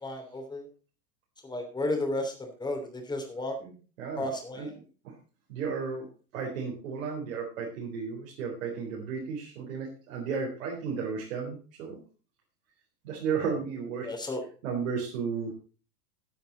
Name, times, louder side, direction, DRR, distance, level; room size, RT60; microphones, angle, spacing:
voice 1, 0.0-0.6 1.4-3.5 4.2-4.7 14.0-14.4, left 1 dB, 10° left, 4 dB, 3.0 m, -33 dB
voice 2, 3.6-4.2 4.5-4.7 5.0-5.1 5.5-6.1 6.3-12.0 13.0-14.1 14.6-15.5, right 5 dB, 55° right, -2 dB, 3.8 m, -34 dB
13.5 x 9.1 x 4.0 m, 0.37 s
figure-of-eight pair, 95°, 48 cm